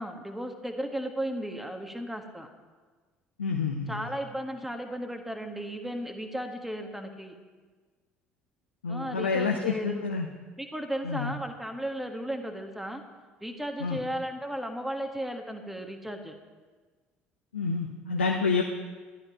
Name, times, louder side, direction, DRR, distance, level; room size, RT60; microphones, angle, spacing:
voice 1, 0.0-2.5 3.9-7.4 8.9-10.0 10.6-13.0 13.4-16.3, equal, 5° right, 5 dB, 1.6 m, -35 dB
voice 2, 3.4-4.1 8.8-10.3 11.0-11.3 13.8-14.0 17.5-18.6, left 5 dB, 80° left, 1 dB, 0.8 m, -28 dB
13.0 x 12.0 x 5.0 m, 1.4 s
figure-of-eight pair, 60°, 6 cm